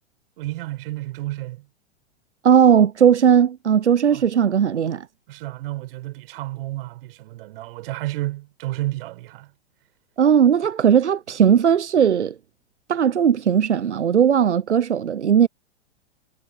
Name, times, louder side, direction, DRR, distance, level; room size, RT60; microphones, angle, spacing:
voice 1, 0.4-1.7 4.1-4.4 5.3-9.5, right 17 dB, 55° right, 6.4 m, -31 dB
voice 2, 2.4-5.1 10.2-12.3 12.9-15.5, right 8 dB, 90° right, 0.8 m, -17 dB
hypercardioid pair, 105°, 34 cm